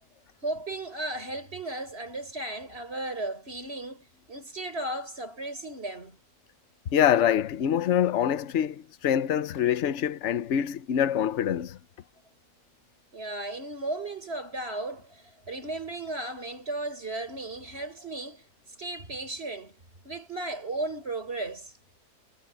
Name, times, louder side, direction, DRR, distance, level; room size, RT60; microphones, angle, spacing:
voice 1, 0.4-6.2 13.1-18.4 18.8-19.8 20.0-21.7, right 2 dB, 40° right, 4.9 m, -35 dB
voice 2, 6.9-11.8, left 9 dB, 55° left, 1.0 m, -25 dB
omnidirectional pair, 1.7 m